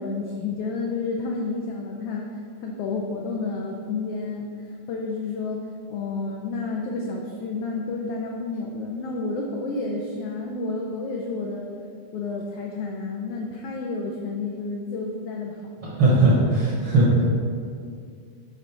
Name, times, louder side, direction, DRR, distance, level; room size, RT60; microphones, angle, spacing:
voice 1, 0.0-2.3 2.6-4.5 4.9-11.7 12.1-15.7 16.1-16.4, left 3 dB, 85° left, 0 dB, 1.3 m, -30 dB
voice 2, 15.8-17.2, right 2 dB, 65° right, -5 dB, 1.3 m, -19 dB
8.2 x 3.8 x 4.7 m, 2.3 s
omnidirectional pair, 3.4 m